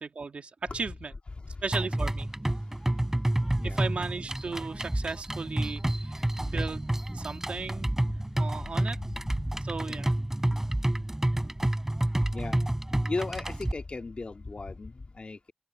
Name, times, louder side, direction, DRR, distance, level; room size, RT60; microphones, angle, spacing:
voice 1, 0.0-1.1 1.6-2.3 3.6-7.9 8.4-9.0 9.6-10.1, right 4 dB, 85° right, 2.2 m, -36 dB
sound 1, 1.7-13.7, right 1 dB, 20° right, 3.6 m, -29 dB
voice 2, 12.3-12.6 13.0-15.5, left 3 dB, 60° left, 2.1 m, -37 dB
wide cardioid pair, 60°, 2 cm